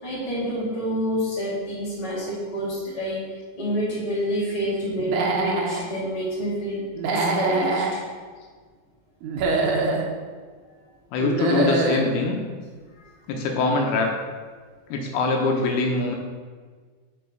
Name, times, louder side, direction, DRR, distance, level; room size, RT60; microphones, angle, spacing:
voice 1, 0.0-3.3 3.5-8.0 13.0-13.1, equal, 15° left, -7 dB, 1.4 m, -28 dB
Human voice / Animal, 5.0-5.8 7.0-7.9 9.2-10.1 11.2-12.1, right 3 dB, 75° right, 1.8 m, -24 dB
voice 2, 11.1-12.4 13.3-14.1 14.9-16.2, left 3 dB, 75° left, 2 dB, 2.6 m, -23 dB
6.1 x 5.1 x 6.0 m, 1.5 s
omnidirectional pair, 4.7 m